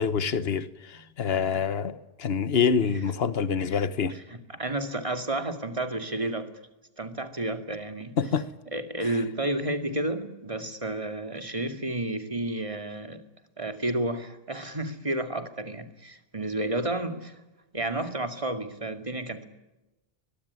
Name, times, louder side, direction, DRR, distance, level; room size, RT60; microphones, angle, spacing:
voice 1, 0.0-4.1 8.2-8.5 9.0-9.1, left 6 dB, 75° left, 1.4 m, -26 dB
voice 2, 4.1-6.5 7.0-8.2 8.7-13.2 13.6-17.3 17.7-19.5, right 1 dB, 30° right, 2.4 m, -31 dB
23.0 x 22.5 x 9.7 m
omnidirectional pair, 1.0 m